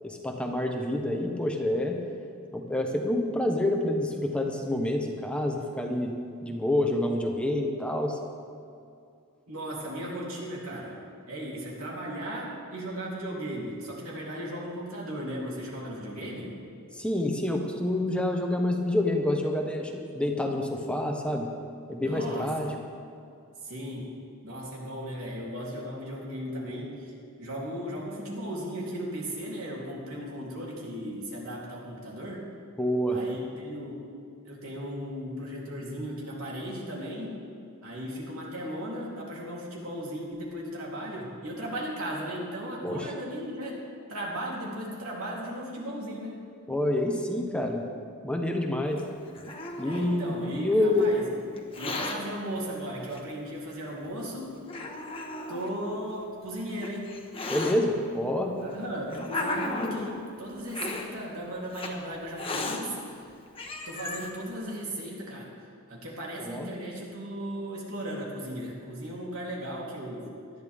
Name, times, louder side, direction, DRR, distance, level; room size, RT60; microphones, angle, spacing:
voice 1, 0.0-2.0 2.5-6.1 6.4-8.2 16.9-21.5 21.9-22.7 32.8-33.2 42.8-43.1 46.7-47.8 48.2-49.0 49.8-51.1 57.5-58.6 66.4-66.7, left 1 dB, 5° left, 2 dB, 1.0 m, -27 dB
voice 2, 9.5-16.5 22.0-22.8 23.6-24.1 24.4-32.5 33.1-34.1 34.4-37.3 37.8-43.8 44.1-46.3 49.8-51.2 51.8-54.5 55.5-57.2 58.6-63.3 63.8-65.5 65.9-70.3, equal, 80° right, -4 dB, 3.3 m, -36 dB
Hiss, 49.0-50.6 51.6-52.2 53.1-53.2 54.0-54.1 54.7-55.7 56.5-57.8 58.6-60.1 60.7-61.1 61.7-61.9 62.4-62.8 63.3-63.4 63.6-64.3, left 2 dB, 25° left, 1.3 m, -34 dB
19.5 x 12.5 x 3.6 m, 2.4 s
head